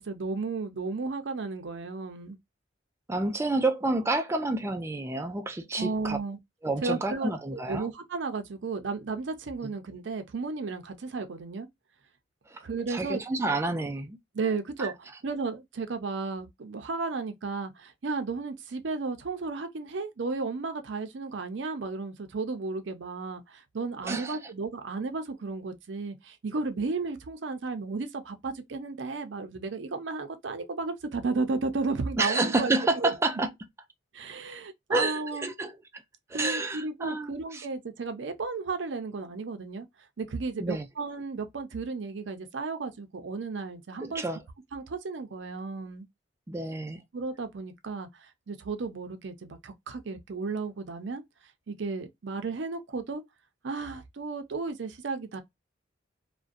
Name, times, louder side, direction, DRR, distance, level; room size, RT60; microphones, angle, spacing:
voice 1, 0.0-2.4 5.8-6.4 6.8-11.7 12.6-13.2 14.3-14.9 15.2-33.1 34.1-35.5 36.3-39.9 40.2-44.2 44.7-46.1 47.1-51.2 51.7-53.2 53.6-55.4, right 4 dB, 75° right, 0.5 m, -34 dB
voice 2, 3.1-6.2 6.6-7.9 9.6-9.7 12.5-12.6 12.9-14.2 14.8-14.9 24.0-24.4 32.2-33.5 34.9-36.0 36.3-37.7 40.6-40.9 44.0-44.4 46.5-47.0, right 2 dB, 15° right, 0.3 m, -29 dB
2.5 x 2.1 x 2.3 m
head